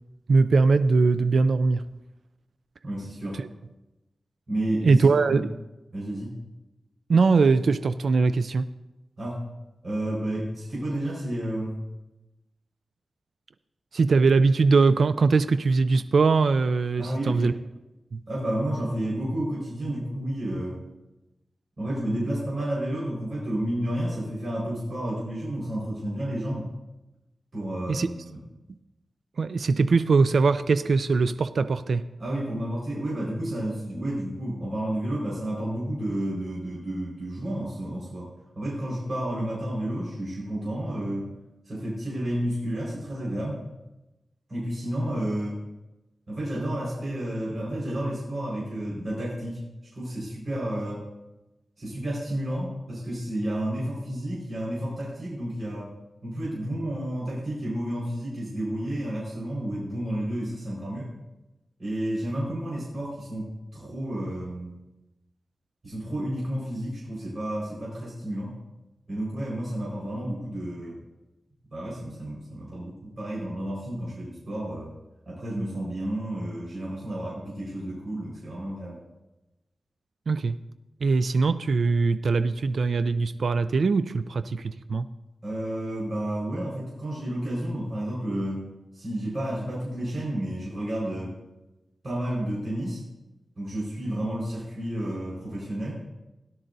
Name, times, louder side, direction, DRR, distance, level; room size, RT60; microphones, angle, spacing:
voice 1, 0.3-1.9 3.3-3.5 4.7-5.5 7.1-8.7 13.9-17.5 18.1-18.2 27.9-28.1 28.7-28.8 29.4-32.0 80.3-80.6 81.0-85.1, right 4 dB, 70° right, 12 dB, 0.4 m, -21 dB
voice 2, 2.8-3.4 4.5-5.4 5.9-6.3 9.2-9.4 9.8-11.8 17.0-17.5 18.3-20.8 21.8-26.7 27.5-28.2 32.2-38.3 38.5-41.3 41.6-43.6 44.5-45.6 46.3-49.6 49.9-51.0 51.8-55.9 56.2-61.1 61.8-64.8 65.8-68.6 69.1-71.0 71.7-74.9 75.2-79.0 85.4-91.4 92.0-93.0 93.6-95.9, right 1 dB, 50° right, -5 dB, 4.6 m, -31 dB
17.5 x 11.5 x 2.7 m, 0.99 s
wide cardioid pair, 95°, 0 cm